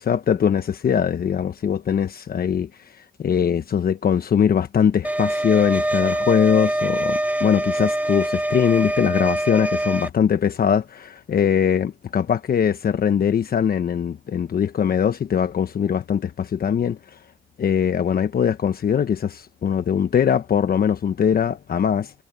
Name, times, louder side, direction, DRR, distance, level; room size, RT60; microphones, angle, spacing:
voice 1, 0.0-2.7 3.0-17.2 17.6-22.1, left 8 dB, 50° left, 1.1 m, -21 dB
sound 1, 5.0-10.1, right 1 dB, 5° right, 1.1 m, -24 dB
cardioid pair, 90°, 20 cm